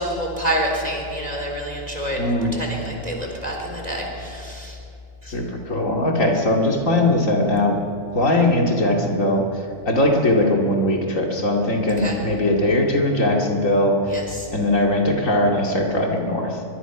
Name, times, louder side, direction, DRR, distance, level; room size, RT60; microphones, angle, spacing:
voice 1, 0.0-2.2 2.5-4.8 5.2-5.3 12.0-12.2 14.1-14.5, equal, 30° right, 0 dB, 4.0 m, -27 dB
voice 2, 2.2-2.5 5.3-7.8 8.1-9.4 9.8-14.2 14.5-16.6, left 1 dB, 70° left, 1 dB, 2.7 m, -20 dB
23.0 x 23.0 x 6.0 m, 2.6 s
omnidirectional pair, 1.4 m